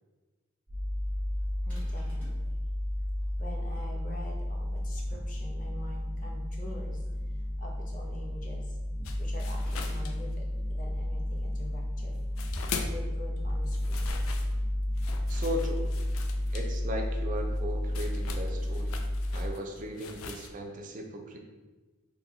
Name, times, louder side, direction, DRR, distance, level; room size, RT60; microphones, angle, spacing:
sound 1, 0.7-19.5, left 1 dB, 10° right, 0.8 m, -32 dB
voice 1, 1.6-2.6 3.4-7.0 7.6-8.8 9.2-10.4 10.7-12.2 12.8-14.1, left 1 dB, 40° left, -1 dB, 0.6 m, -45 dB
sound 2, 1.7-2.5 9.6-10.2, equal, 10° left, 1.0 m, -53 dB
sound 3, 9.0-10.8 11.1-13.2 13.5-20.5, left 5 dB, 90° left, 0.3 m, -42 dB
voice 2, 15.3-15.9 16.5-19.0 19.3-21.4, equal, 40° right, 3 dB, 0.4 m, -37 dB
3.9 x 2.3 x 2.7 m, 1.2 s
head